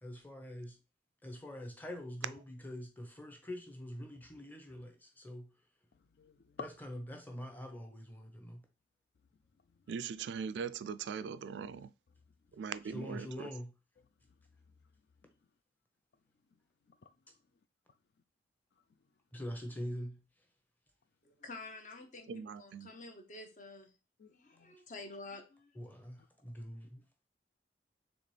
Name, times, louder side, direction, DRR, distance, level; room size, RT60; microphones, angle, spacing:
voice 1, 0.0-0.8 1.2-5.5 6.6-8.7 12.8-13.7 19.3-20.2 25.7-27.0, equal, 10° left, 0.7 m, -44 dB
voice 2, 5.9-6.7 9.6-9.9 14.3-14.4 16.9-17.1 24.2-24.8 26.2-26.3, left 5 dB, 65° left, 0.4 m, -51 dB
voice 3, 9.9-11.9 12.6-13.5 22.3-22.9, right 6 dB, 80° right, 0.3 m, -40 dB
voice 4, 21.2-23.9 24.3-25.7, left 3 dB, 45° left, 0.7 m, -49 dB
4.1 x 3.4 x 3.2 m
head